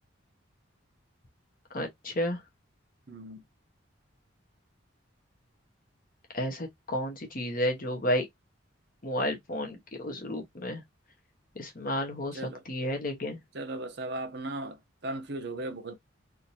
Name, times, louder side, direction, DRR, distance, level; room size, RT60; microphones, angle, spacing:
voice 1, 1.7-2.4 6.3-8.2 9.0-10.8 11.6-12.4 12.7-13.4, left 1 dB, 45° left, 1.1 m, -31 dB
voice 2, 3.1-3.4 12.3-12.6 13.5-16.0, right 2 dB, 55° right, 0.8 m, -37 dB
3.7 x 2.7 x 2.7 m
head